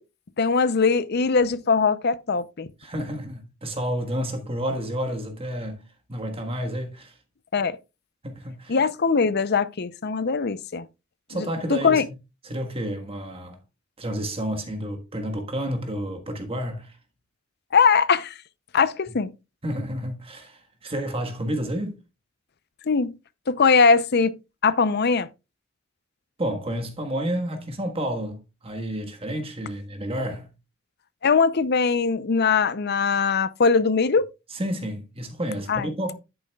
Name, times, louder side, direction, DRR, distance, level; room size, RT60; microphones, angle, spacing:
voice 1, 0.4-2.7 7.5-7.8 8.7-10.8 11.3-12.0 17.7-18.3 18.7-19.3 22.9-23.1 23.5-24.3 24.6-25.3 31.2-34.2 35.7-35.9, left 5 dB, 55° left, 0.6 m, -21 dB
voice 2, 2.8-5.8 6.1-7.1 8.2-8.8 11.3-12.0 12.4-13.6 14.0-17.0 19.6-22.0 26.4-30.5 34.5-36.1, equal, 30° right, 1.5 m, -30 dB
10.5 x 8.9 x 2.3 m
head